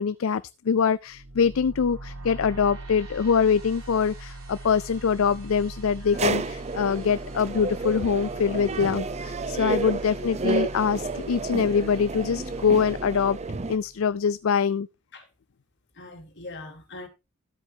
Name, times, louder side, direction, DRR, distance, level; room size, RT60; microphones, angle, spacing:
voice 1, 0.0-13.4 13.7-14.9, left 6 dB, 70° left, 0.4 m, -24 dB
sound 1, 1.1-14.2, right 2 dB, 80° right, 6.3 m, -41 dB
sound 2, 6.1-13.8, right 3 dB, 30° right, 0.7 m, -31 dB
voice 2, 15.9-17.1, left 2 dB, 55° left, 3.4 m, -42 dB
13.5 x 8.1 x 2.8 m
head